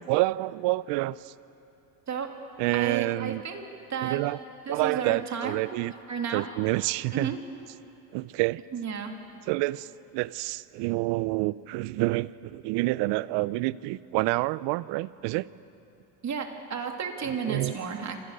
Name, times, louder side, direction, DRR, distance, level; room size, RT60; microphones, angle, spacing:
voice 1, 0.0-1.3 2.6-3.4 4.0-4.4 4.7-5.9 6.3-7.4 8.1-8.6 9.5-15.4 17.2-17.7, right 20 dB, 60° right, 19 dB, 0.8 m, -28 dB
voice 2, 2.7-4.2 4.7-5.6 6.1-6.5 7.1-7.4 8.7-9.1 16.2-18.2, right 6 dB, 35° right, 3 dB, 3.3 m, -32 dB
28.0 x 25.5 x 6.7 m, 2.8 s
hypercardioid pair, 90°, 49 cm